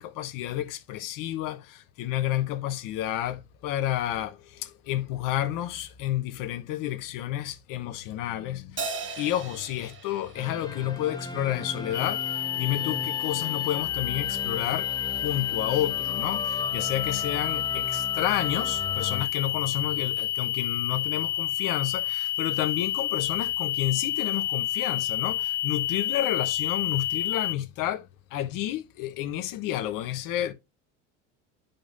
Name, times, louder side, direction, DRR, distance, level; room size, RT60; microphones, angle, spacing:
voice 1, 0.0-8.8 9.2-12.2 12.6-28.0 28.3-30.5, left 13 dB, 55° left, 1.1 m, -30 dB
Crash cymbal, 8.8-11.5, right 4 dB, 30° right, 2.2 m, -38 dB
sound 1, 10.4-19.3, left 2 dB, 10° left, 1.0 m, -37 dB
sound 2, 11.9-27.6, left 12 dB, 30° left, 0.4 m, -29 dB
10.0 x 5.2 x 2.6 m
hypercardioid pair, 80°, 38 cm